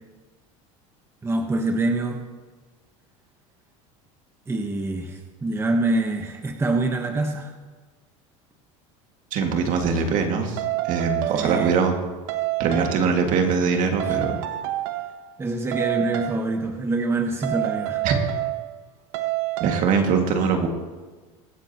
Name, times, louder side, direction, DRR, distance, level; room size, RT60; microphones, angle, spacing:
voice 1, 1.2-2.2 4.5-7.5 11.3-11.8 14.0-14.2 15.4-18.0, right 2 dB, 15° right, 3 dB, 1.1 m, -25 dB
voice 2, 9.3-11.9 12.6-14.4 18.0-18.2 19.6-20.7, right 5 dB, 50° right, 3 dB, 2.1 m, -22 dB
sound 1, 10.6-12.0 12.3-13.2 14.0-15.3 15.7-16.5 17.4-18.8 19.1-19.8, right 16 dB, 70° right, 0.8 m, -28 dB
24.0 x 8.6 x 3.0 m, 1.3 s
supercardioid pair, 120°, 17 cm